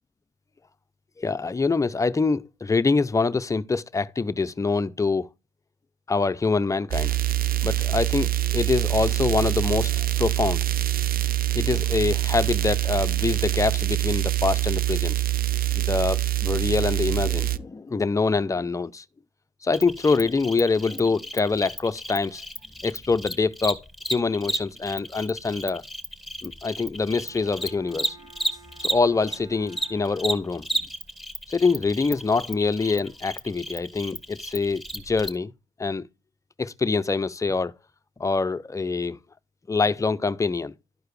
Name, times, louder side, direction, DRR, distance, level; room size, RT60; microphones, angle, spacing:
voice 1, 1.2-5.3 6.1-7.1 7.6-10.6 11.5-15.2 15.8-19.0 19.6-22.4 22.8-23.8 24.1-25.8 26.4-28.2 28.8-30.7 31.5-35.5 35.8-36.1 36.6-37.7 38.2-39.2 39.7-40.7, left 4 dB, 15° left, 0.5 m, -25 dB
sound 1, 6.9-17.6, right 14 dB, 45° right, 0.5 m, -24 dB
Cricket, 19.7-29.4 29.7-35.3, right 1 dB, ahead, 2.0 m, -33 dB
Bowed string instrument, 27.2-31.0, right 4 dB, 70° right, 1.9 m, -52 dB
12.0 x 4.7 x 3.2 m
cardioid pair, 90°, 20 cm